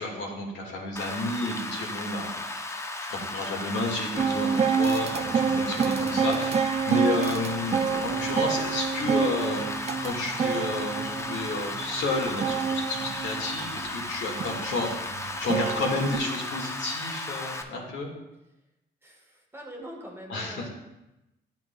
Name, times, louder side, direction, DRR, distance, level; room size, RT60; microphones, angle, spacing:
voice 1, 0.0-2.4 2.7-14.9 15.2-18.1 20.3-20.7, left 2 dB, 70° left, -1 dB, 1.8 m, -31 dB
Rain, 1.0-17.6, left 2 dB, 15° left, 0.6 m, -35 dB
sound 1, 4.2-16.2, right 6 dB, 35° right, 0.4 m, -28 dB
voice 2, 19.0-20.7, equal, 10° right, -1 dB, 1.4 m, -43 dB
11.0 x 6.1 x 2.3 m, 0.94 s
cardioid pair, 90°, 20 cm